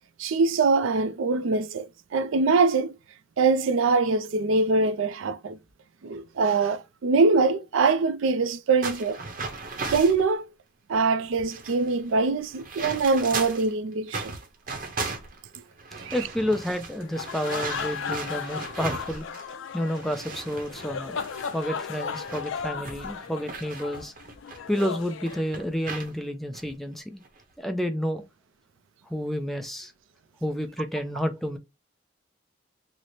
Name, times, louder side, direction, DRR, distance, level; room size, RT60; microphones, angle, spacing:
voice 1, 0.2-2.9 3.4-5.6 6.0-9.2 9.9-10.4 10.9-14.2 16.1-16.2, right 4 dB, 75° right, 0.4 m, -23 dB
sound 1, 8.8-10.2 10.9-11.0 11.3-13.7 14.1-19.5 19.8-24.9 25.3-26.1 26.5-26.7 27.2-27.5, right 4 dB, 40° right, 0.7 m, -37 dB
voice 2, 16.1-19.2 19.7-21.2 21.5-24.1 24.7-27.2 27.6-28.2 29.1-29.9 30.4-31.6, equal, ahead, 0.4 m, -30 dB
sound 2, 17.0-26.0, left 6 dB, 70° left, 0.4 m, -36 dB
3.1 x 2.0 x 4.0 m
head